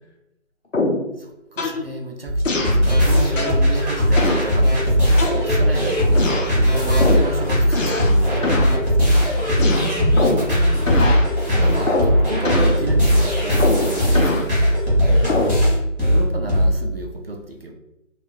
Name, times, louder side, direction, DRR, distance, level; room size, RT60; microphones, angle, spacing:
sound 1, 0.7-1.1 1.6-1.8 2.4-2.8 3.4-3.6 4.2-4.5 5.2-5.7 6.1-6.5 7.0-7.3 7.7-8.2 8.4-8.8 9.6-10.5 10.9-11.3 11.9-12.2 12.4-12.8 13.6-14.5 15.3-15.6, left 2 dB, 85° left, 0.7 m, -23 dB
voice 1, 1.2-9.8 11.6-14.7 16.0-17.7, right 2 dB, 50° right, 2 dB, 0.5 m, -32 dB
sound 2, 2.3-16.7, equal, ahead, 0.9 m, -18 dB
voice 2, 9.3-11.1 15.0-15.5, left 1 dB, 60° left, -3 dB, 1.3 m, -30 dB
3.0 x 2.8 x 2.5 m, 0.89 s
figure-of-eight pair, 155°, 38 cm